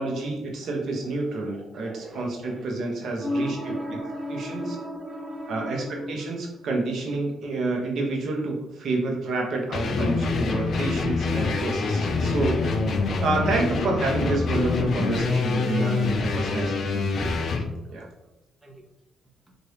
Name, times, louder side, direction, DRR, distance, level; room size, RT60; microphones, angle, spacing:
voice 1, 0.0-3.6 3.9-4.0 4.3-4.8 5.5-12.6 13.2-17.3 17.9-18.1, right 3 dB, 65° right, 0 dB, 0.8 m, -28 dB
voice 2, 1.5-6.3 18.6-18.7, equal, 25° right, 1 dB, 0.8 m, -34 dB
sound 1, 9.7-17.7, left 4 dB, 55° left, 0.4 m, -25 dB
3.3 x 2.5 x 2.9 m, 0.91 s
cardioid pair, 90°, 0 cm